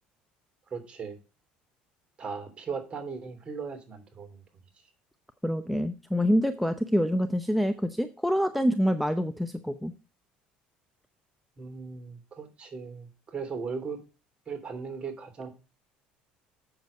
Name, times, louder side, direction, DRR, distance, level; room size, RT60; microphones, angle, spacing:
voice 1, 0.7-1.2 2.2-4.4 11.6-14.0 14.5-15.5, right 5 dB, 35° right, 4 dB, 3.0 m, -37 dB
voice 2, 5.4-9.9, equal, ahead, 8 dB, 0.7 m, -26 dB
7.8 x 6.9 x 5.5 m, 0.32 s
cardioid pair, 110°, 3 cm